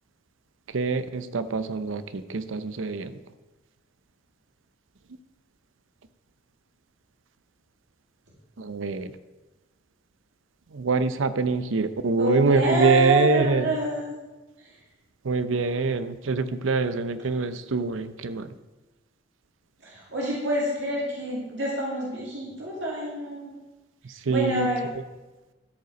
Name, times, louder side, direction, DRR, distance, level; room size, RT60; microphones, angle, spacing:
voice 1, 0.7-3.1 8.6-9.1 10.7-13.7 15.2-18.5 24.3-24.7, right 3 dB, 90° right, 12 dB, 0.6 m, -25 dB
voice 2, 12.2-14.1 19.8-23.5 24.3-24.9, right 2 dB, 70° right, -4 dB, 2.1 m, -27 dB
13.0 x 5.5 x 5.2 m, 1.1 s
head